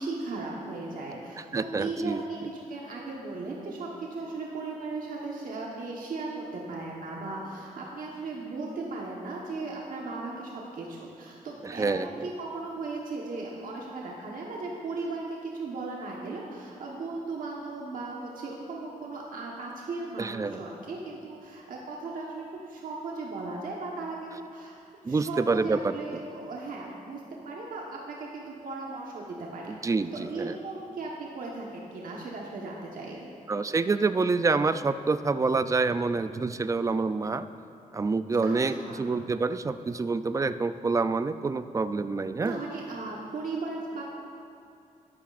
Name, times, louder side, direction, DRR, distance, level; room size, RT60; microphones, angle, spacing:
voice 1, 0.0-24.7 25.0-33.3 38.4-39.1 42.4-44.0, right 3 dB, 75° right, -3 dB, 1.2 m, -37 dB
voice 2, 1.5-2.2 11.6-12.3 20.2-20.6 25.0-26.2 29.7-30.5 33.5-37.5 37.9-42.6, right 4 dB, 20° right, 12 dB, 0.3 m, -27 dB
12.5 x 12.0 x 2.5 m, 2.4 s
cardioid pair, 105°, 14 cm